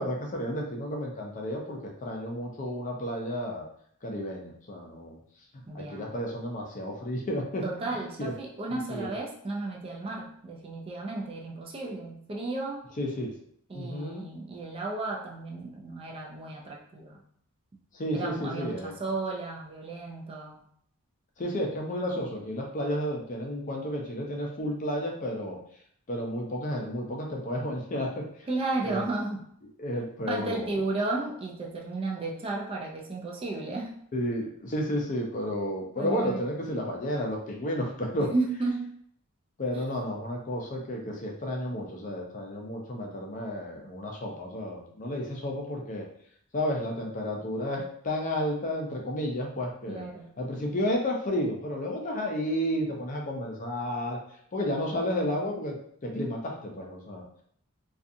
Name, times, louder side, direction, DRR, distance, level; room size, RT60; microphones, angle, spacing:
voice 1, 0.0-3.6 4.0-5.2 5.7-7.6 8.2-8.3 8.9-9.1 13.0-13.3 13.7-14.2 17.9-18.9 21.4-25.6 26.1-28.3 28.8-29.0 29.8-30.8 34.1-38.3 39.6-46.0 46.5-50.1 50.4-54.2 54.5-55.8 56.0-57.2, equal, 35° left, 0 dB, 0.5 m, -32 dB
voice 2, 5.7-6.1 7.6-12.9 13.7-17.2 18.1-20.7 28.5-29.4 30.3-33.9 36.0-36.4 38.3-38.9 49.9-50.3, right 2 dB, 25° right, 0 dB, 0.3 m, -33 dB
2.6 x 2.4 x 2.5 m, 0.66 s
head